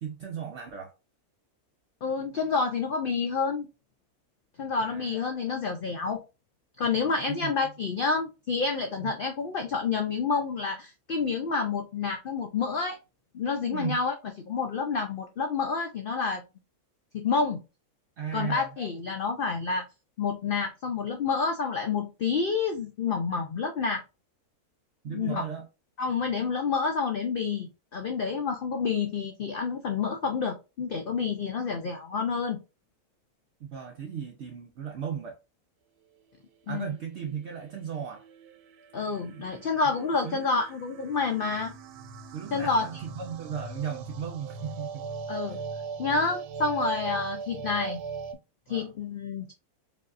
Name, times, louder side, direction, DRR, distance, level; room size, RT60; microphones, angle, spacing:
voice 1, 0.0-0.9 4.8-5.3 7.3-7.5 9.0-9.1 13.7-14.0 18.2-18.7 25.0-25.7 33.6-35.4 36.7-38.2 39.3-39.5 40.2-40.5 42.3-45.1 45.5-45.6 48.7-48.9, right 8 dB, 65° right, 0.7 m, -36 dB
voice 2, 2.0-3.7 4.6-6.2 6.8-13.0 13.3-14.1 14.5-16.4 17.1-17.6 18.3-19.8 20.2-24.0 25.1-25.4 26.0-32.6 36.7-37.0 38.9-41.7 42.5-42.8 45.3-45.6 46.0-48.0 48.7-49.5, left 5 dB, 90° left, 0.4 m, -29 dB
sound 1, 36.9-48.3, right 5 dB, 90° right, 1.1 m, -40 dB
4.8 x 2.6 x 2.5 m
omnidirectional pair, 1.6 m